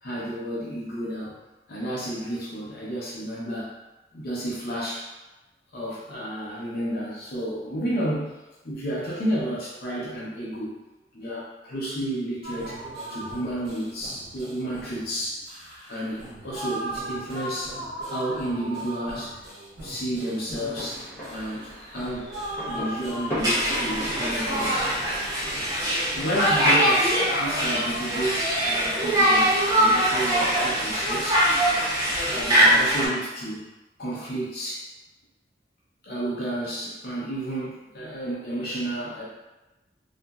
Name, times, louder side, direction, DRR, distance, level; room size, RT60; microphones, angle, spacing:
voice 1, 0.0-1.3 1.7-3.7 4.1-5.1 5.7-8.4 8.6-10.7 11.1-12.8 13.1-15.5 15.9-17.8 18.1-19.4 19.8-21.0 21.3-22.3 22.7-24.9 26.0-31.5 32.3-33.7 34.0-34.9 36.0-39.2, right 1 dB, 60° left, -7 dB, 0.7 m, -31 dB
sound 1, 12.4-28.2, right 1 dB, 65° right, 0.9 m, -38 dB
sound 2, 20.6-26.5, equal, 10° left, 0.9 m, -38 dB
Conversation, 23.4-33.1, equal, 20° right, 0.6 m, -22 dB
2.9 x 2.5 x 2.3 m, 1.1 s
head